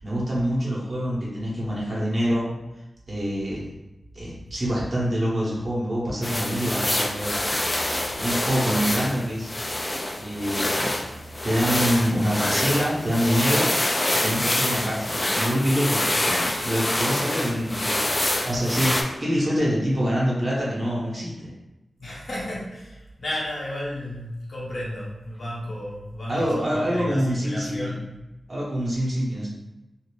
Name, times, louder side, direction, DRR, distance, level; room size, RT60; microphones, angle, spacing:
voice 1, 0.0-2.5 3.1-3.7 4.1-7.5 8.2-9.5 10.2-11.0 11.4-13.7 14.2-18.9 19.2-21.5 26.3-28.0 28.5-29.5, equal, 50° right, -6 dB, 1.1 m, -25 dB
sound 1, 6.2-19.0, left 1 dB, 30° left, 0.4 m, -26 dB
voice 2, 22.0-28.2, left 1 dB, 70° left, -6 dB, 1.1 m, -33 dB
2.7 x 2.1 x 3.2 m, 0.99 s
cardioid pair, 45°, 0 cm